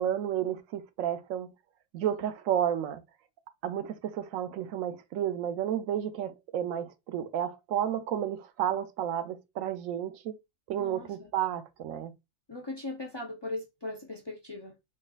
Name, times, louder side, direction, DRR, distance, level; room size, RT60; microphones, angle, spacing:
voice 1, 0.0-1.5 1.9-3.0 3.6-10.3 10.7-12.1, right 10 dB, 85° right, 1.0 m, -31 dB
voice 2, 10.8-11.3 12.5-14.7, left 2 dB, 30° left, 0.5 m, -39 dB
3.8 x 3.7 x 2.3 m
omnidirectional pair, 1.4 m